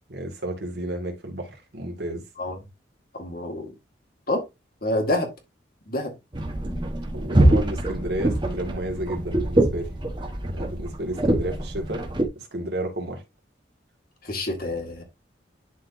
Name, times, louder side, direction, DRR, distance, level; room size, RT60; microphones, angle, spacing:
voice 1, 0.1-2.2 7.1-9.9 10.4-12.1 12.3-13.2, right 1 dB, 60° right, 2.3 m, -32 dB
voice 2, 3.1-3.7 4.3-4.4 4.8-5.3 5.9-6.1 14.2-15.0, left 1 dB, 50° left, 2.0 m, -27 dB
sound 1, 6.3-12.3, right 1 dB, 25° right, 1.4 m, -24 dB
11.0 x 4.2 x 2.7 m
head